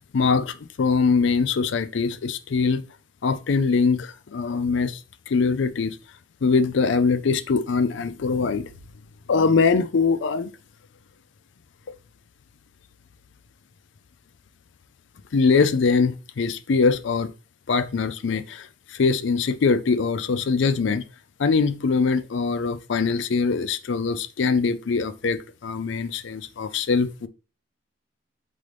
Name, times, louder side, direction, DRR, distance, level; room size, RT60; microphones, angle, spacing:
voice 1, 0.0-2.8 3.2-5.0 5.3-6.0 6.4-8.7 9.3-10.5 15.3-17.3 17.7-21.0 21.4-27.3, left 4 dB, 65° left, 0.4 m, -22 dB
4.0 x 3.8 x 3.3 m
head